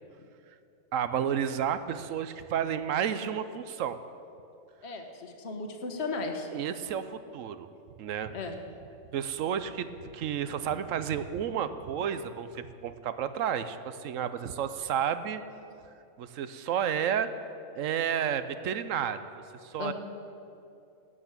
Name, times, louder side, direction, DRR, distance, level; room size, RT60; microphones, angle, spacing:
voice 1, 0.9-4.0 6.5-7.7 8.0-8.3 9.1-15.4 16.2-17.3 17.7-19.3 19.6-19.9, right 8 dB, 70° right, 12 dB, 1.0 m, -31 dB
voice 2, 4.8-6.5 8.3-8.6 19.8-19.9, left 3 dB, 55° left, 4 dB, 1.4 m, -35 dB
12.5 x 8.1 x 8.8 m, 2.6 s
omnidirectional pair, 1.4 m